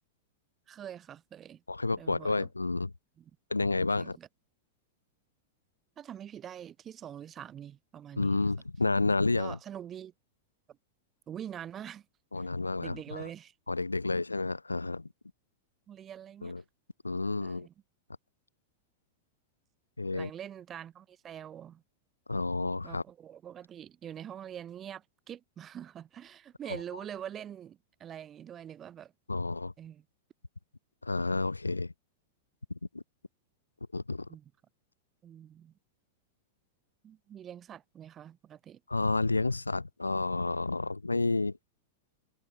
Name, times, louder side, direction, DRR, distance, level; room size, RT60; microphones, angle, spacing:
voice 1, 0.7-1.6 2.0-2.5 3.2-3.3 4.0-4.3 6.0-8.4 9.4-10.1 11.3-12.1 12.4-12.5 12.8-13.5 15.9-16.5 17.4-17.7 20.1-21.8 22.8-29.1 29.8-30.1 34.3-34.5 35.2-35.7 37.0-38.8, right 9 dB, 25° right, 5.3 m, -44 dB
voice 2, 1.7-2.9 3.5-4.2 8.2-9.6 12.3-13.3 13.7-15.1 16.4-16.6 17.0-17.7 20.0-20.3 22.3-23.0 29.3-29.7 31.0-31.9 32.9-33.0 33.9-34.2 38.9-41.6, left 3 dB, 80° left, 3.3 m, -30 dB
figure-of-eight pair, 90°, 0 cm